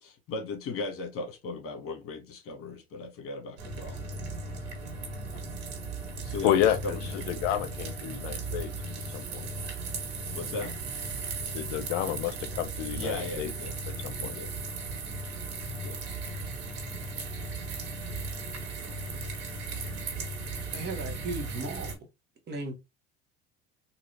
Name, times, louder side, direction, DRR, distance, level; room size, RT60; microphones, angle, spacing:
voice 1, 0.0-4.0 6.2-7.7 10.3-10.7 13.0-13.7 14.2-14.5 15.7-16.0 18.8-19.1 19.7-20.0, left 3 dB, 40° left, 1.6 m, -38 dB
sound 1, 3.6-21.9, right 3 dB, 80° right, 1.7 m, -36 dB
voice 2, 6.4-7.0 7.3-8.7 9.1-9.5 11.5-13.5 14.0-14.4, left 11 dB, 80° left, 0.7 m, -29 dB
voice 3, 20.7-21.9 22.5-22.7, right 3 dB, 30° right, 1.2 m, -36 dB
3.7 x 2.9 x 3.2 m
supercardioid pair, 100°, 33 cm